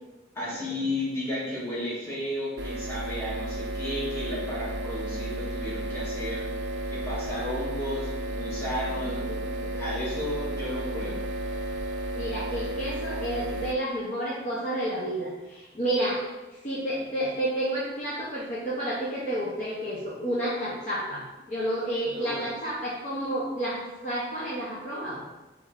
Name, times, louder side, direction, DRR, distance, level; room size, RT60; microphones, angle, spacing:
voice 1, 0.3-6.5 6.9-9.2 9.8-11.2 22.1-22.4, left 1 dB, 15° left, -8 dB, 1.3 m, -33 dB
sound 1, 2.6-13.7, right 1 dB, 75° right, 0.4 m, -33 dB
voice 2, 9.0-9.9 12.1-16.2 16.6-25.2, right 1 dB, 45° left, -8 dB, 0.8 m, -31 dB
3.7 x 3.1 x 3.6 m, 1.1 s
head